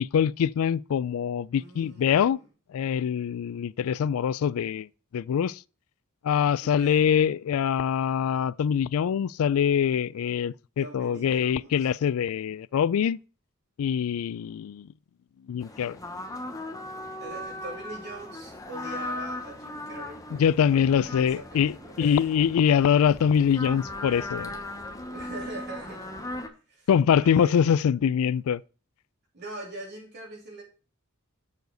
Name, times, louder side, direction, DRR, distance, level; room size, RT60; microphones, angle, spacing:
voice 1, 0.0-2.4 2.7-4.9 5.1-5.6 6.2-13.2 13.8-14.9 15.5-16.0 20.3-24.5 26.9-28.6, left 8 dB, 75° left, 0.3 m, -24 dB
voice 2, 1.5-2.4 6.6-7.1 10.8-11.9 17.2-22.3 25.1-26.4 26.7-26.9 27.1-27.6 29.3-30.6, right 2 dB, 55° right, 3.4 m, -42 dB
sound 1, 15.6-26.5, left 1 dB, 15° left, 0.9 m, -38 dB
7.1 x 6.5 x 3.9 m
head